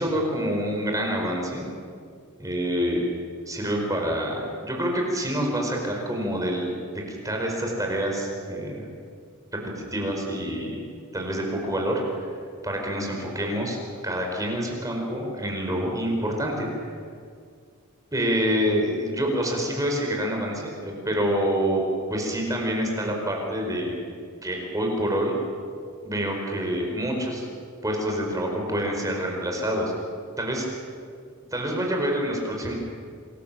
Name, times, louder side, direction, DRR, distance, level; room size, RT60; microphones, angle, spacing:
voice 1, 0.0-1.6 2.4-3.0 3.4-8.9 9.6-10.8 11.1-12.0 12.6-13.8 14.0-16.7 18.1-24.0 24.4-25.3 26.0-27.5 27.8-29.9 30.4-30.7 31.5-32.7, equal, 15° right, 0 dB, 5.0 m, -27 dB
28.5 x 21.0 x 7.6 m, 2.1 s
head